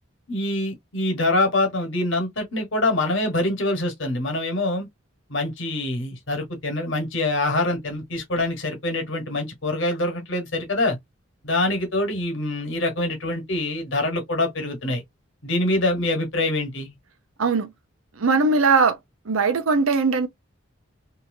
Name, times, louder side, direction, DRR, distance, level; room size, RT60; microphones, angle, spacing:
voice 1, 0.3-4.9 5.3-11.0 11.4-15.0 15.4-16.9, left 2 dB, 70° left, 1.3 m, -25 dB
voice 2, 18.2-19.0 19.3-20.3, right 4 dB, 85° right, 0.7 m, -20 dB
2.8 x 2.7 x 2.7 m
head